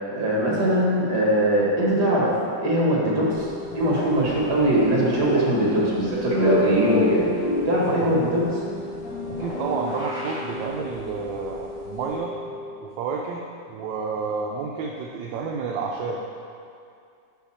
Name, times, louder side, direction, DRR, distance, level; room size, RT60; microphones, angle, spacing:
voice 1, 0.1-2.3 2.6-3.5 3.7-7.3 7.7-8.4, right 1 dB, 60° right, -5 dB, 2.0 m, -21 dB
sound 1, 2.7-12.7, left 2 dB, 25° left, 1.3 m, -38 dB
sound 2, 3.3-12.2, left 1 dB, 80° left, 2.5 m, -38 dB
sound 3, 6.4-10.9, left 2 dB, 60° left, 1.8 m, -28 dB
voice 2, 9.3-12.3 12.8-16.2, right 5 dB, 80° right, -1 dB, 1.3 m, -30 dB
6.2 x 5.7 x 4.2 m, 2.4 s
omnidirectional pair, 2.1 m